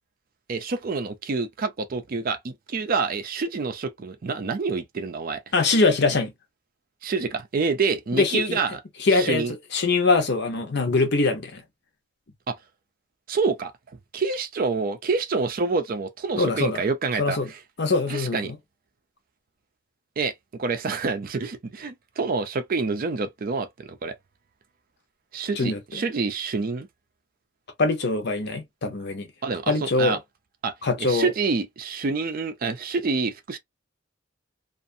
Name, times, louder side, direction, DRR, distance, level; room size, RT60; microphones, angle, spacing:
voice 1, 0.5-5.4 7.0-8.8 9.1-9.5 12.5-12.6 13.3-13.7 14.1-17.6 18.1-18.5 20.2-20.3 20.6-24.1 25.3-26.9 29.4-30.2 30.6-30.7 31.0-33.6, right 4 dB, 45° right, 0.4 m, -27 dB
voice 2, 5.5-6.3 8.1-8.6 9.0-9.4 9.7-11.6 16.4-16.8 17.2-17.5 17.8-18.6 25.6-26.0 27.8-29.3 29.7-30.2 30.8-31.3, left 3 dB, 55° left, 0.8 m, -23 dB
2.6 x 2.4 x 2.6 m
head